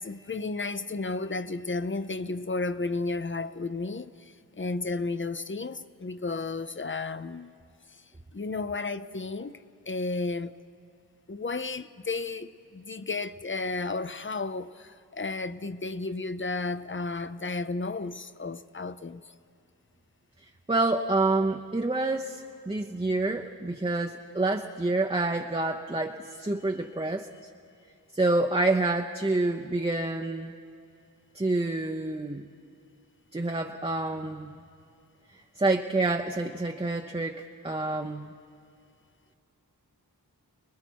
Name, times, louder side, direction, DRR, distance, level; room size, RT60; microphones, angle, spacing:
voice 1, 0.0-7.5 7.9-8.0 8.3-10.5 11.3-19.3, left 3 dB, 30° left, 0.6 m, -33 dB
voice 2, 20.7-27.3 28.1-30.5 31.3-32.5 33.3-34.6 35.6-38.3, right 2 dB, 15° right, 0.7 m, -28 dB
29.0 x 21.0 x 4.6 m
wide cardioid pair, 60°, 38 cm